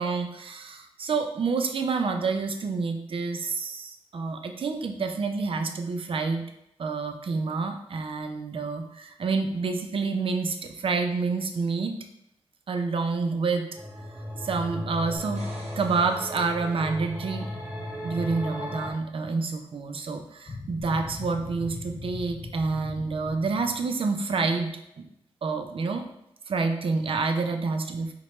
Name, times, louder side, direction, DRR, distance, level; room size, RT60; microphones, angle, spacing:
voice 1, 0.0-6.4 6.8-11.9 12.7-13.7 14.4-15.5 15.8-17.5 18.0-24.7 25.0-25.1 25.4-26.1 26.5-28.1, right 4 dB, 55° right, 5 dB, 0.4 m, -28 dB
sound 1, 13.8-18.9, left 1 dB, 15° right, 0.7 m, -35 dB
sound 2, 15.2-17.1 20.8-20.9, right 2 dB, 75° right, 0.8 m, -47 dB
sound 3, 20.5-23.9, left 3 dB, 30° left, 0.3 m, -40 dB
4.3 x 2.2 x 2.9 m, 0.81 s
wide cardioid pair, 80°, 11 cm